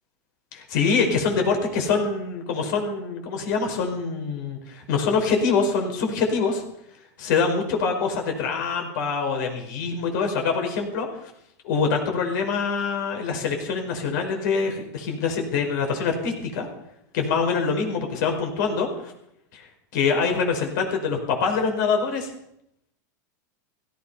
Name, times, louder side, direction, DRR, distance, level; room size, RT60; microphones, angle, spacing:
voice 1, 0.5-6.6 7.2-11.3 11.6-16.7 17.1-18.9 19.5-19.7 19.9-22.3, left 5 dB, 70° left, 3 dB, 5.1 m, -24 dB
16.5 x 15.0 x 5.7 m, 0.78 s
supercardioid pair, 120°, 10 cm